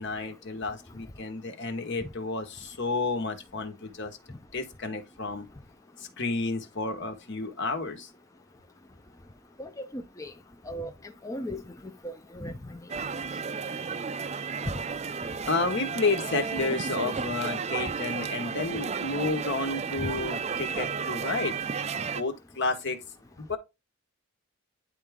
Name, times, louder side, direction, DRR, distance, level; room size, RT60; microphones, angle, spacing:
voice 1, 0.0-4.1 4.5-5.5 6.2-8.1 15.4-21.6 22.1-23.0 23.4-23.6, left 3 dB, 60° left, 1.4 m, -31 dB
voice 2, 9.6-10.3 10.7-10.9 11.2-11.6 12.0-12.8 20.0-20.1, equal, 15° left, 0.6 m, -36 dB
sound 1, 12.9-22.2, right 5 dB, 30° right, 0.5 m, -33 dB
10.0 x 3.5 x 3.6 m
head